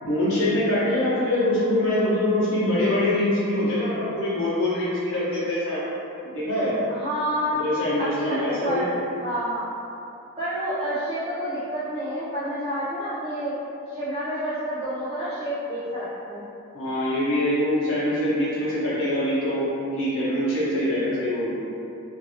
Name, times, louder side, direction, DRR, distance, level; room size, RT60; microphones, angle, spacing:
voice 1, 0.0-5.8 6.2-6.8 7.6-9.0 16.7-21.5, left 1 dB, 70° left, -11 dB, 0.9 m, -24 dB
voice 2, 6.9-7.6 8.0-8.9 9.2-9.7 10.4-13.5 13.9-16.4, equal, 25° right, -13 dB, 0.4 m, -29 dB
2.6 x 2.6 x 2.7 m, 2.7 s
head